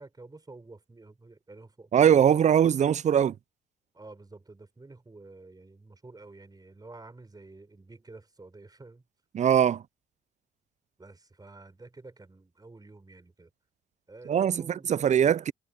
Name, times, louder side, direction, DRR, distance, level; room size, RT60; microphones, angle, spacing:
voice 1, 0.0-2.3 3.9-9.0 11.0-13.5 14.1-15.2, right 3 dB, 20° right, 4.0 m, -50 dB
voice 2, 1.9-3.3 9.3-9.8 14.3-14.6 14.9-15.5, right 9 dB, 35° right, 0.4 m, -21 dB
cardioid pair, 90°, 20 cm